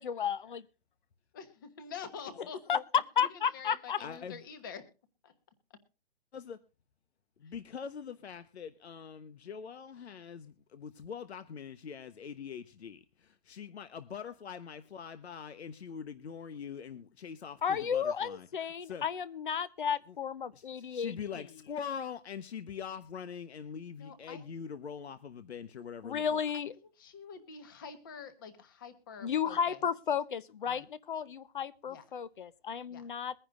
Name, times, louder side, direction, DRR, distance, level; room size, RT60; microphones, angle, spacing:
voice 1, 0.0-0.6 2.7-2.8 3.2-4.0 17.6-21.4 26.0-26.7 29.2-33.3, left 7 dB, 50° left, 18 dB, 0.9 m, -33 dB
voice 2, 1.3-2.6 3.2-3.3 3.5-4.8 5.2-5.3 7.4-7.5 24.0-24.4 26.5-29.8 30.6-30.8 31.9-32.0 32.9-33.1, left 6 dB, 20° left, 11 dB, 1.1 m, -47 dB
voice 3, 4.0-4.4 6.3-6.6 7.4-18.5 18.8-19.0 20.5-26.4, left 7 dB, 80° left, 12 dB, 1.1 m, -43 dB
22.5 x 10.0 x 2.5 m, 0.30 s
hypercardioid pair, 175°, 32 cm